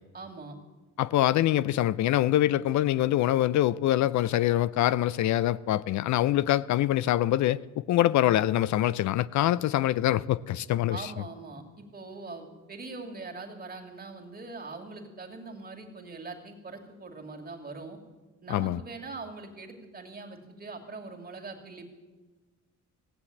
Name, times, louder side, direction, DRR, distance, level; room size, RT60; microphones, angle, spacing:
voice 1, 0.1-0.6 10.9-18.0 18.4-21.9, right 3 dB, 30° right, 2.5 m, -42 dB
voice 2, 1.0-11.0 18.5-18.8, left 13 dB, 70° left, 0.5 m, -24 dB
16.0 x 7.9 x 8.5 m
cardioid pair, 90°, 30 cm